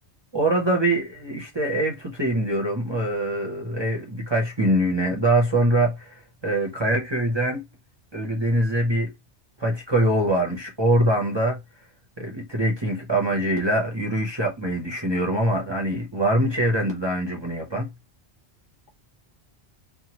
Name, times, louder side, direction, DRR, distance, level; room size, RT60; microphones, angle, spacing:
voice 1, 0.3-7.6 8.1-9.1 9.6-11.6 12.2-17.9, right 1 dB, 30° right, 0.6 m, -23 dB
2.9 x 2.2 x 2.9 m
omnidirectional pair, 1.1 m